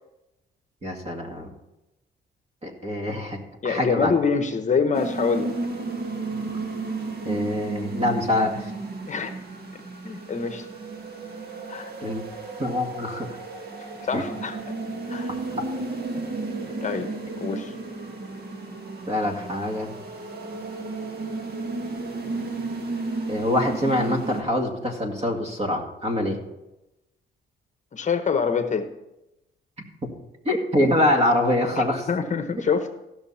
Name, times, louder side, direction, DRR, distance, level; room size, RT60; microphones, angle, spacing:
voice 1, 0.8-1.5 2.6-4.1 6.4-6.5 7.3-8.7 12.0-12.2 12.6-13.4 14.1-14.2 19.1-20.0 23.3-26.4 30.5-32.1, left 1 dB, 30° right, 3 dB, 2.1 m, -25 dB
voice 2, 3.6-5.5 9.1-9.3 10.0-10.6 11.7-11.9 14.0-14.6 15.1-15.4 16.8-17.1 17.4-17.7 27.9-28.9 31.8-32.9, left 5 dB, 35° left, 8 dB, 0.9 m, -25 dB
sound 1, 4.9-24.4, right 3 dB, 55° right, 1.9 m, -33 dB
15.5 x 6.5 x 4.2 m, 0.95 s
cardioid pair, 90°, 20 cm